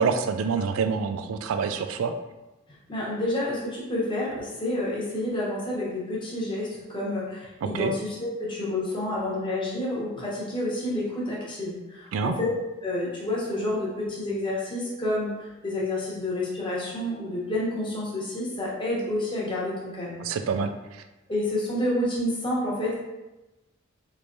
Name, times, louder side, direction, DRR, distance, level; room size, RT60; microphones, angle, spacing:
voice 1, 0.0-2.1 7.6-7.9 12.1-12.3 20.2-21.0, right 5 dB, 75° right, 8 dB, 0.3 m, -27 dB
voice 2, 2.9-12.5 12.8-20.2 21.3-22.9, left 1 dB, 25° left, -6 dB, 0.9 m, -29 dB
3.2 x 3.2 x 2.6 m, 1.1 s
head